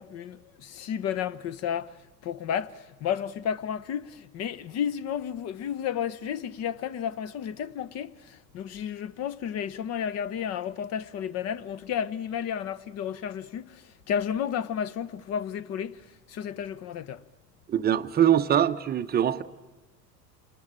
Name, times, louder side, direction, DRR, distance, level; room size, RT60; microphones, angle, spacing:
voice 1, 0.0-1.9 2.2-16.0 16.3-17.2, left 8 dB, 30° left, 0.8 m, -32 dB
voice 2, 17.7-19.4, right 10 dB, 20° right, 0.8 m, -23 dB
28.5 x 21.0 x 8.8 m
figure-of-eight pair, 80°, 49 cm